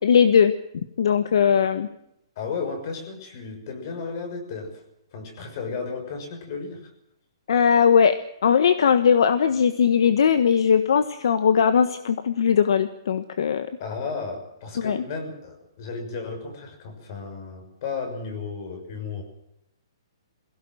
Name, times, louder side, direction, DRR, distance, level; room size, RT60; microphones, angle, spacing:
voice 1, 0.0-0.5 1.0-1.9 7.5-13.7 14.8-15.0, left 7 dB, 65° left, 11 dB, 1.3 m, -19 dB
voice 2, 2.4-4.8 5.1-6.9 13.8-19.2, left 5 dB, 40° left, 6 dB, 6.2 m, -34 dB
23.0 x 17.0 x 7.8 m, 0.81 s
hypercardioid pair, 165°, 3 cm